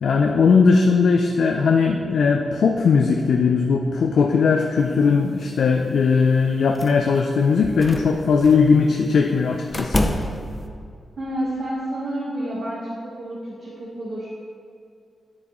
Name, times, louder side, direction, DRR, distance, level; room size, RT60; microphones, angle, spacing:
voice 1, 0.0-10.0, left 5 dB, 80° left, 3 dB, 0.4 m, -18 dB
sound 1, 6.7-7.2 7.6-8.7 9.7-10.6, left 1 dB, 15° left, 0.5 m, -27 dB
voice 2, 11.2-14.3, right 1 dB, 60° right, -7 dB, 1.4 m, -29 dB
9.7 x 7.8 x 3.1 m, 2.3 s
wide cardioid pair, 135°, 0 cm